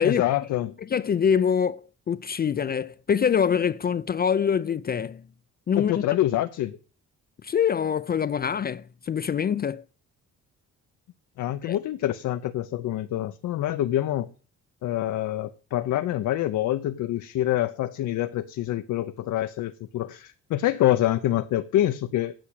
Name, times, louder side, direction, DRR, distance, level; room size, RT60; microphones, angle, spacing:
voice 1, 0.0-0.7 5.7-6.8 11.4-14.3 14.8-22.3, left 13 dB, 75° left, 0.7 m, -26 dB
voice 2, 0.9-5.2 5.7-6.0 7.4-9.8 11.6-11.8, left 7 dB, 30° left, 0.4 m, -24 dB
8.8 x 6.2 x 8.1 m
cardioid pair, 90°, 30 cm